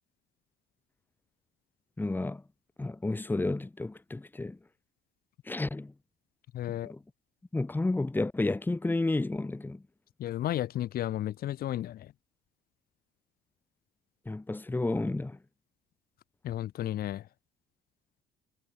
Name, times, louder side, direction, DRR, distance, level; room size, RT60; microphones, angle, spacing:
voice 1, 2.0-2.4 2.8-4.6 5.5-5.9 6.7-7.0 7.5-9.8 14.3-15.4, left 2 dB, 10° left, 1.7 m, -31 dB
voice 2, 6.5-6.9 10.2-12.1 16.4-17.2, left 12 dB, 60° left, 1.5 m, -33 dB
cardioid pair, 110°, 17 cm